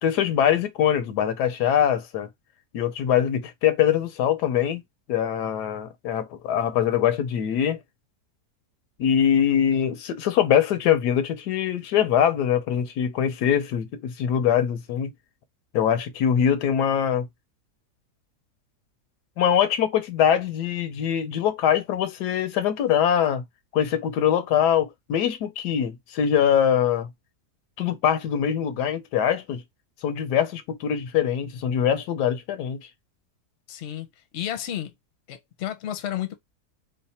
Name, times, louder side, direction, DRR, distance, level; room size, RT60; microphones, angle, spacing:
voice 1, 0.0-2.3 2.7-4.8 5.1-7.8 9.0-15.1 15.7-17.3 19.4-23.4 23.7-27.1 27.8-29.6 30.0-32.8, left 9 dB, 85° left, 1.3 m, -23 dB
voice 2, 33.7-34.1 34.3-34.9 35.3-36.3, left 11 dB, 55° left, 0.8 m, -31 dB
3.2 x 2.1 x 4.1 m
omnidirectional pair, 1.7 m